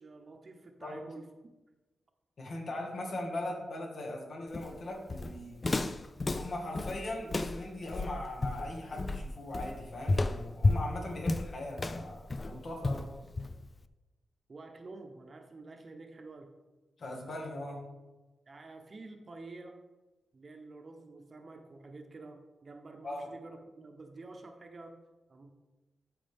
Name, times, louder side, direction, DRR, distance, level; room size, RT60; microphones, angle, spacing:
voice 1, 0.0-1.5 11.0-11.2 12.9-13.0 14.5-16.5 18.5-19.8 20.3-25.0 25.3-25.5, right 3 dB, 45° right, 4 dB, 0.9 m, -49 dB
voice 2, 2.4-5.6 6.3-13.1 17.0-17.9 23.0-23.3, left 1 dB, 60° left, 0 dB, 2.0 m, -40 dB
Walk footsteps, 4.5-13.8, left 2 dB, 30° left, 0.4 m, -32 dB
13.0 x 5.2 x 3.5 m, 1.1 s
cardioid pair, 90°, 0 cm